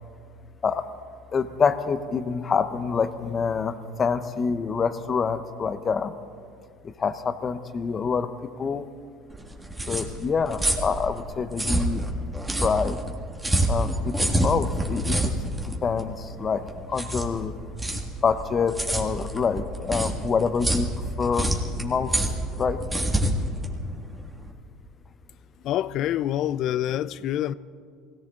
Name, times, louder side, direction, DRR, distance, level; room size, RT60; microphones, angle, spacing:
voice 1, 1.3-6.1 7.0-8.3 8.6-8.8 9.9-12.0 12.6-13.0 13.7-15.2 15.8-16.6 16.9-17.5 18.2-20.9 21.2-21.5 21.8-22.1 22.6-22.8, left 5 dB, 30° left, 11 dB, 0.9 m, -26 dB
sound 1, 9.3-24.5, right 1 dB, 10° right, 1.9 m, -27 dB
voice 2, 25.6-27.5, left 12 dB, 55° left, 18 dB, 0.4 m, -26 dB
21.0 x 17.0 x 3.8 m, 2.3 s
supercardioid pair, 105°, 0 cm